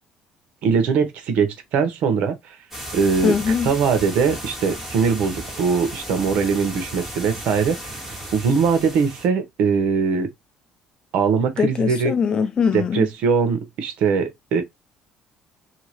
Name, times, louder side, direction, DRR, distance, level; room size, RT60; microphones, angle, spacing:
voice 1, 0.6-2.6 2.9-10.3 11.1-12.1 12.7-14.6, right 5 dB, 75° right, 0.9 m, -21 dB
sound 1, 2.7-9.3, right 1 dB, 5° right, 1.7 m, -35 dB
voice 2, 3.2-3.7 11.6-13.1, left 6 dB, 40° left, 0.5 m, -21 dB
2.9 x 2.8 x 2.9 m
cardioid pair, 120°, 2 cm